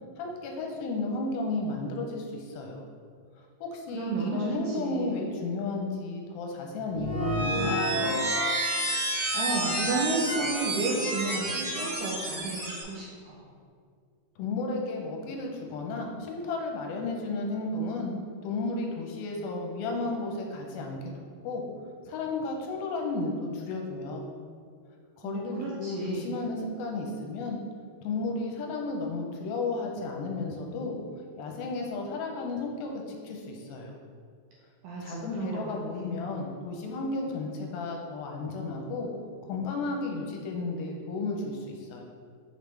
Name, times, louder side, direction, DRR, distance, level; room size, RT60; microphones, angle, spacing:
voice 1, 0.2-2.8 3.6-8.1 14.4-18.1 18.4-21.0 21.4-21.6 22.1-24.3 25.2-27.6 28.0-31.0 31.4-33.9 35.0-39.1 39.5-42.0, left 3 dB, 85° left, 1 dB, 2.4 m, -33 dB
voice 2, 3.9-5.2 9.3-13.4 25.2-26.3 34.8-36.1, right 3 dB, 80° right, -4 dB, 1.9 m, -32 dB
sound 1, 6.9-12.8, right 1 dB, 55° right, 2.6 m, -29 dB
6.3 x 5.2 x 3.2 m, 2.2 s
omnidirectional pair, 4.4 m